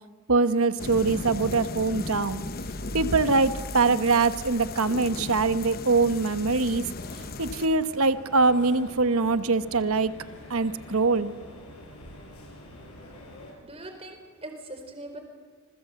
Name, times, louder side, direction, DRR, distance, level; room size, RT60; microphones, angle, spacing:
voice 1, 0.3-2.4 2.9-6.8 7.4-10.1 10.5-11.3, right 3 dB, 75° right, 13 dB, 1.1 m, -23 dB
sound 1, 0.8-7.7, left 3 dB, 40° left, 1.0 m, -36 dB
sound 2, 2.4-5.0, equal, 25° left, 1.6 m, -41 dB
sound 3, 6.9-13.5, left 1 dB, 85° left, 6.5 m, -46 dB
voice 2, 13.2-15.2, right 1 dB, 25° right, 5 dB, 4.2 m, -42 dB
27.0 x 21.0 x 8.1 m, 1.4 s
head